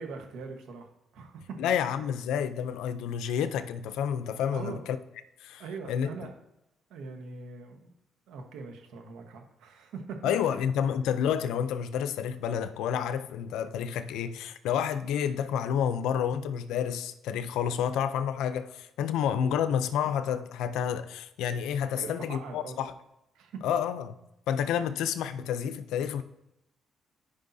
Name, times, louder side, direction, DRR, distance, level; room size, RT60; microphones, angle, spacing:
voice 1, 0.0-1.6 4.5-4.8 5.6-6.3 6.9-7.9 8.3-10.6 21.9-22.8 23.3-23.6, right 4 dB, 85° right, 1.2 m, -42 dB
voice 2, 1.6-5.0 5.4-5.6 5.9-6.3 10.2-22.9 23.6-24.1 24.5-26.2, left 8 dB, 90° left, 0.5 m, -29 dB
13.5 x 5.4 x 2.7 m
cardioid pair, 90°, 0 cm